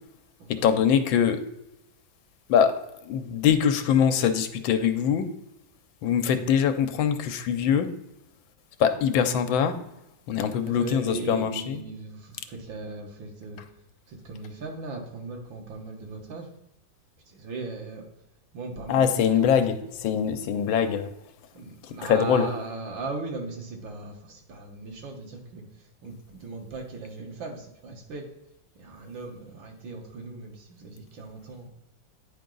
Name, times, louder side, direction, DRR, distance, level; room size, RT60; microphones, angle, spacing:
voice 1, 0.5-1.4 2.5-5.3 6.0-7.9 8.8-9.8 10.3-11.8 18.9-21.1 21.8-22.5, left 8 dB, 90° left, 9 dB, 1.4 m, -23 dB
voice 2, 10.7-13.6 14.1-16.5 17.3-18.1 18.5-19.6 21.5-25.6 26.0-28.3 28.8-31.7, right 3 dB, 75° right, 2 dB, 2.0 m, -38 dB
9.6 x 4.7 x 3.9 m, 0.89 s
omnidirectional pair, 2.1 m